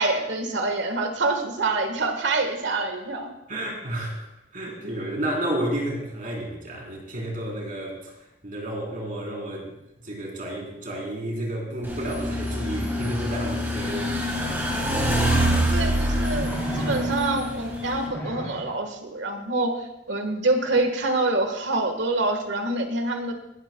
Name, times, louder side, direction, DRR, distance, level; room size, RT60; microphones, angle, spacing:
voice 1, 0.0-3.3 15.7-19.7 20.1-23.3, right 2 dB, 80° right, 5 dB, 1.6 m, -26 dB
voice 2, 3.5-4.3 4.5-8.1 8.4-14.9, right 1 dB, 45° right, -2 dB, 3.9 m, -31 dB
sound 1, 11.8-18.1, equal, 10° right, 3.2 m, -25 dB
sound 2, 16.3-17.5 18.0-18.7 20.6-20.8, equal, 20° left, 2.8 m, -33 dB
17.5 x 12.0 x 2.3 m, 0.86 s
head